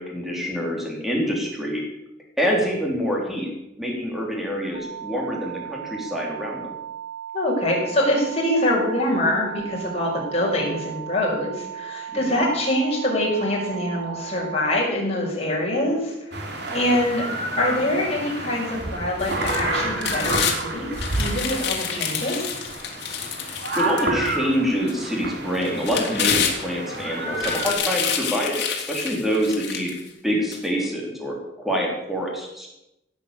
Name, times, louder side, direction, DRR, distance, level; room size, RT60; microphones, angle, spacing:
voice 1, 0.0-1.8 2.4-3.5 3.8-6.7 12.1-12.4 23.4-29.9 30.2-32.7, equal, ahead, -2 dB, 3.4 m, -26 dB
sound 1, 4.7-14.8, right 9 dB, 40° right, 4.0 m, -36 dB
voice 2, 7.3-16.1 16.7-17.3 17.6-20.9 21.2-22.4, left 1 dB, 30° left, -3 dB, 6.1 m, -24 dB
sound 2, 16.3-27.7, right 2 dB, 60° right, 2.9 m, -29 dB
sound 3, 19.2-20.6 21.0-24.4 24.9-25.0 25.6-27.0 27.3-30.0 30.5-30.6, left 7 dB, 60° left, 2.9 m, -28 dB
16.5 x 8.5 x 8.5 m, 0.88 s
head